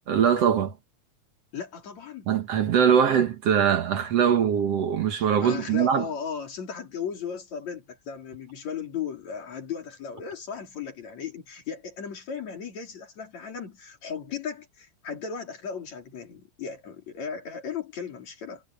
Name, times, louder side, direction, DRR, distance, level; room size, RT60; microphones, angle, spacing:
voice 1, 0.1-0.7 2.3-6.0, right 8 dB, 60° right, 2.2 m, -22 dB
voice 2, 1.5-2.3 5.4-18.6, left 7 dB, 60° left, 4.8 m, -36 dB
omnidirectional pair, 3.5 m